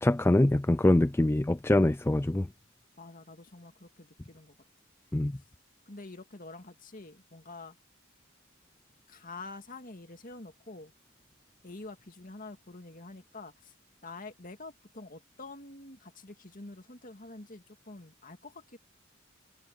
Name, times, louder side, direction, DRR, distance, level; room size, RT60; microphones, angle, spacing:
voice 1, 0.0-2.5 5.1-5.3, left 1 dB, 10° left, 0.4 m, -24 dB
voice 2, 3.0-4.6 5.9-7.8 9.1-10.9 11.6-13.7 14.0-18.8, left 3 dB, 40° left, 2.3 m, -47 dB
head